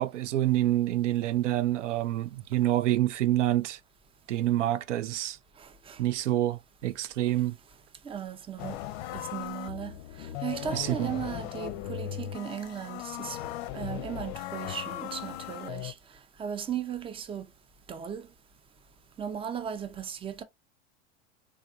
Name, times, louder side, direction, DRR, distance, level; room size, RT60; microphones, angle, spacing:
voice 1, 0.0-3.8 4.3-5.4 6.0-7.6 10.7-11.1, right 14 dB, 80° right, 0.5 m, -27 dB
voice 2, 5.6-6.0 8.0-8.8 9.1-13.4 13.7-16.0 16.4-17.5 17.9-18.3 19.2-20.4, right 8 dB, 15° right, 0.5 m, -37 dB
sound 1, 8.6-15.9, left 12 dB, 60° left, 0.5 m, -38 dB
3.4 x 3.3 x 2.6 m
hypercardioid pair, 90°, 35 cm